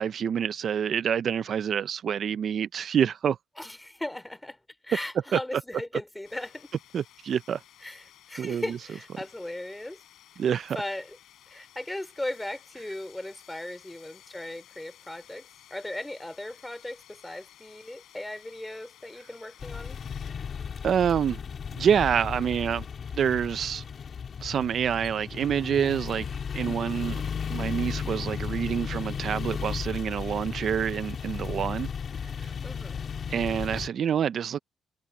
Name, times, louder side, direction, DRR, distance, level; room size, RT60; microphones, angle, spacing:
voice 1, 0.0-3.4 5.3-5.4 6.9-7.6 8.4-8.8 10.4-10.8 20.8-21.4 21.7-22.9 23.1-23.8 24.4-26.3 26.5-27.2 27.5-31.9 32.4-32.5 33.3-34.6, right 8 dB, 60° right, 0.4 m, -27 dB
voice 2, 3.6-4.6 4.8-6.7 7.8-10.0 10.7-11.2 11.5-20.0 32.6-33.0, left 1 dB, 10° left, 4.1 m, -37 dB
sound 1, 6.2-20.3, left 12 dB, 80° left, 7.2 m, -55 dB
sound 2, 19.6-33.9, left 6 dB, 50° left, 3.5 m, -35 dB
cardioid pair, 90°, 0 cm